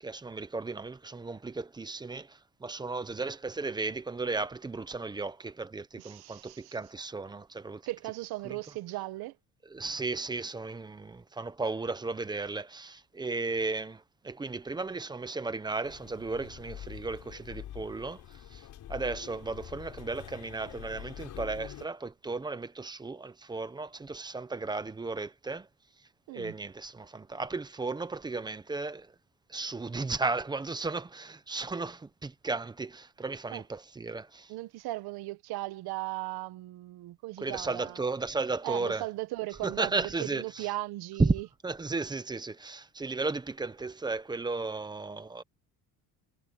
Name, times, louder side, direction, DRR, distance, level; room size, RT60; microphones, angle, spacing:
voice 1, 0.0-7.8 8.4-8.6 9.7-25.7 26.3-29.1 29.5-34.5 37.4-39.1 39.6-40.7 41.2-41.4 41.6-45.4, right 3 dB, 10° right, 0.8 m, -34 dB
voice 2, 6.0-6.8 7.9-9.4 26.3-26.6 33.5-33.6 34.5-38.0 38.6-41.5, right 18 dB, 65° right, 1.3 m, -37 dB
sound 1, 15.8-21.9, left 11 dB, 45° left, 5.1 m, -45 dB
cardioid pair, 175°, 40 cm